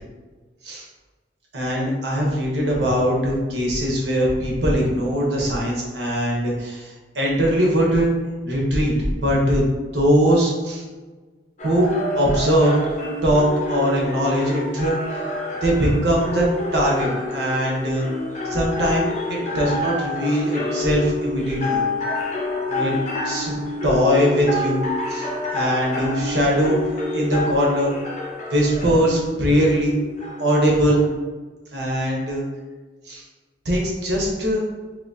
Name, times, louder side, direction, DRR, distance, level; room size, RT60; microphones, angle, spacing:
voice 1, 1.5-8.1 8.4-9.7 9.9-10.8 11.6-11.9 12.1-12.8 13.2-15.0 15.6-16.4 16.7-18.1 18.4-21.8 22.7-22.9 23.2-23.5 23.8-24.8 25.1-27.9 28.5-30.0 30.4-31.0 31.7-32.4 33.1-33.2 33.6-34.6, equal, 70° right, -2 dB, 1.0 m, -21 dB
sound 1, 11.6-31.2, left 2 dB, 40° left, 0.6 m, -28 dB
3.6 x 2.9 x 2.7 m, 1.3 s
head